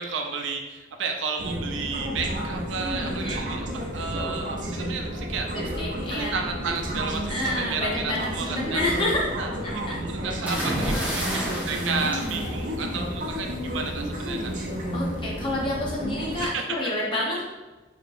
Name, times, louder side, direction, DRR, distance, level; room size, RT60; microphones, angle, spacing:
voice 1, 0.0-5.5 6.1-8.8 9.3-14.5 16.5-16.6, right 5 dB, 85° right, 3 dB, 0.5 m, -32 dB
sound 1, 1.4-16.5, equal, 45° right, 0.6 m, -31 dB
voice 2, 2.9-3.4 5.5-6.5 7.3-9.3 9.6-10.4 10.9-11.1 14.9-17.4, left 1 dB, 25° left, -4 dB, 0.9 m, -29 dB
sound 2, 10.5-13.2 14.4-14.7, equal, 10° right, 0.9 m, -30 dB
4.9 x 2.9 x 2.6 m, 1.2 s
head